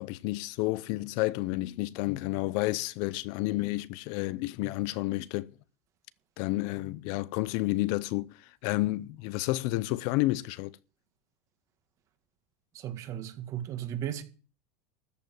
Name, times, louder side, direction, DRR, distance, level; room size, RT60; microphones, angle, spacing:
voice 1, 0.0-5.5 6.4-10.8, left 19 dB, 60° left, 0.7 m, -30 dB
voice 2, 12.7-14.2, right 10 dB, 40° right, 1.8 m, -35 dB
13.5 x 5.4 x 9.2 m
supercardioid pair, 125°, 8 cm